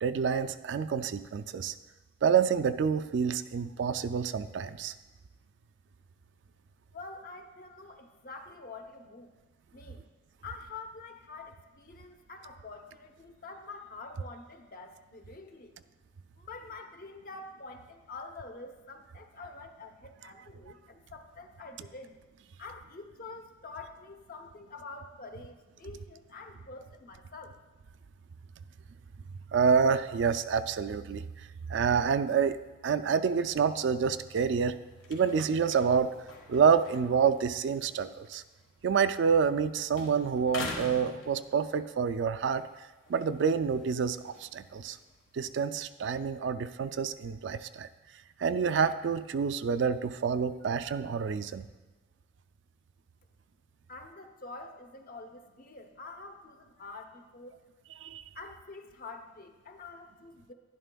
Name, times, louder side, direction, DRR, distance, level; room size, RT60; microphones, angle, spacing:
voice 1, 0.0-1.7 2.2-4.9 29.5-31.3 31.7-32.6 32.8-34.8 35.1-36.1 36.5-38.4 38.8-42.6 43.1-45.0 45.3-47.9 48.4-51.7 58.0-58.2, right 6 dB, 65° right, 12 dB, 0.3 m, -28 dB
voice 2, 6.9-9.3 9.7-10.1 10.4-15.7 16.4-22.1 22.6-27.6 53.9-57.6 58.3-60.5, left 3 dB, 45° left, 6 dB, 0.7 m, -46 dB
sound 1, 34.0-39.6 39.9-41.9 42.4-45.5, left 3 dB, 80° left, 1.4 m, -46 dB
11.0 x 11.0 x 2.3 m, 1.2 s
head